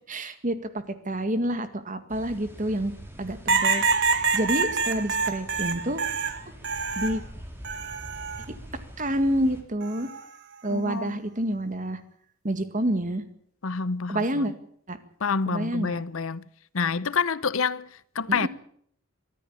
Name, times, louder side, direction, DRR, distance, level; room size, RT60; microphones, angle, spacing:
voice 1, 0.1-0.6 1.1-2.9 3.2-3.8 4.3-6.0 7.0-7.2 8.5-8.6 9.0-10.1 10.6-12.0 12.4-13.2 14.1-14.5 14.9-15.0 15.5-16.0 18.3-18.5, right 1 dB, 35° right, 1.9 m, -28 dB
sound 1, 2.1-9.6, equal, 10° right, 3.8 m, -44 dB
Metallic Bird Sweep, 3.5-7.2 7.6-8.4 9.8-10.2, right 4 dB, 55° right, 1.7 m, -26 dB
voice 2, 10.7-11.2 13.6-14.5 15.2-16.4 16.7-18.5, left 5 dB, 70° left, 0.8 m, -28 dB
24.0 x 13.5 x 8.8 m
head